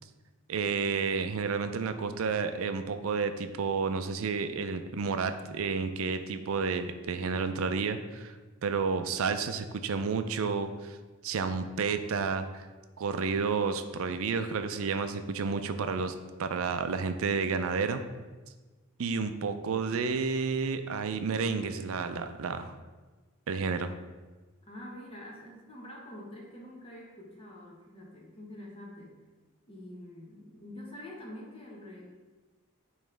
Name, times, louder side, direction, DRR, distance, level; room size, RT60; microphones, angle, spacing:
voice 1, 0.5-8.3 8.6-11.0 11.2-12.7 13.0-16.1 16.4-18.0 19.0-22.7 23.5-24.0, right 5 dB, 65° right, 9 dB, 0.4 m, -31 dB
voice 2, 19.2-19.7 24.7-29.2 29.7-32.1, left 1 dB, 25° left, -3 dB, 1.2 m, -46 dB
8.9 x 3.1 x 3.3 m, 1.3 s
head